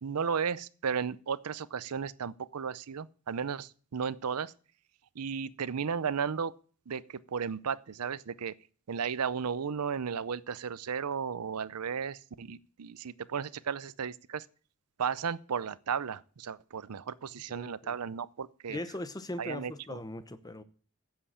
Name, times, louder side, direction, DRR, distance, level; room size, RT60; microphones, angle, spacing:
voice 1, 0.0-4.5 5.1-6.6 6.9-8.5 8.9-14.5 15.0-18.8 19.4-20.0, right 6 dB, 85° right, 0.6 m, -34 dB
voice 2, 17.5-17.9 18.7-20.6, left 1 dB, 15° left, 0.8 m, -40 dB
9.9 x 7.7 x 8.7 m
head